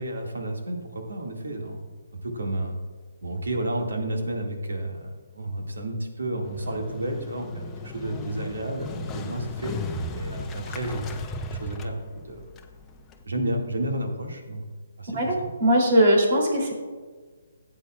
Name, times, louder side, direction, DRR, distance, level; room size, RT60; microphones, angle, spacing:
voice 1, 0.0-1.8 2.2-2.8 3.2-11.1 11.5-12.4 13.2-14.6 15.0-15.5, right 1 dB, 80° right, 2 dB, 2.1 m, -31 dB
Motorcycle, 6.5-13.2, left 3 dB, 15° left, 0.6 m, -36 dB
voice 2, 15.1-16.7, equal, 45° right, 0 dB, 3.1 m, -20 dB
14.5 x 8.8 x 2.4 m, 1.5 s
hypercardioid pair, 150°, 0 cm